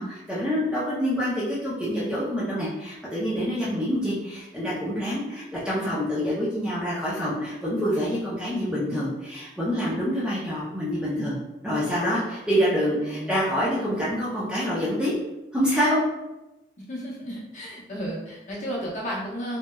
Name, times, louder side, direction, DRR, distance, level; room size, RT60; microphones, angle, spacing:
voice 1, 0.0-11.4 11.6-15.1 15.5-16.0, equal, 5° right, -8 dB, 0.5 m, -26 dB
voice 2, 13.0-13.4 16.9-19.6, equal, 40° left, -6 dB, 0.7 m, -33 dB
2.9 x 2.1 x 2.2 m, 0.99 s
head